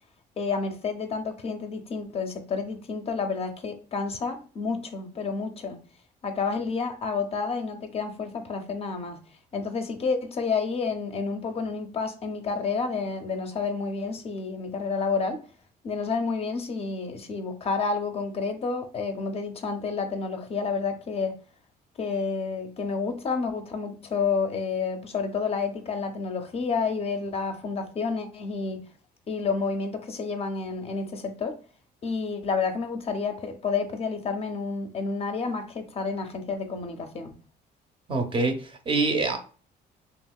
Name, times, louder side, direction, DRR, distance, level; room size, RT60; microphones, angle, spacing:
voice 1, 0.4-5.8 6.2-9.2 9.5-15.4 15.8-21.4 22.0-28.8 29.3-31.6 32.0-37.3, left 4 dB, 35° left, 0.5 m, -30 dB
voice 2, 38.1-39.4, right 3 dB, 30° right, 0.6 m, -25 dB
2.9 x 2.7 x 2.2 m
cardioid pair, 110°, 17 cm